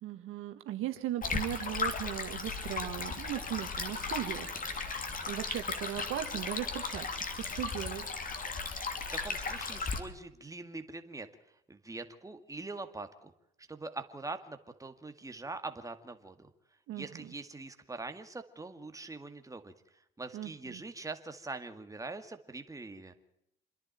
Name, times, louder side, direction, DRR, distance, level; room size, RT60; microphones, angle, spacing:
voice 1, 0.0-8.0 16.9-17.3 20.3-20.8, right 12 dB, 85° right, 7 dB, 1.9 m, -38 dB
Stream, 1.2-10.0, left 4 dB, 40° left, 3.1 m, -36 dB
voice 2, 9.1-11.3 11.7-13.3 13.7-16.5 16.9-19.7 20.2-23.1, right 3 dB, 15° right, 7 dB, 2.1 m, -43 dB
27.5 x 11.0 x 9.2 m, 0.81 s
cardioid pair, 85°, 21 cm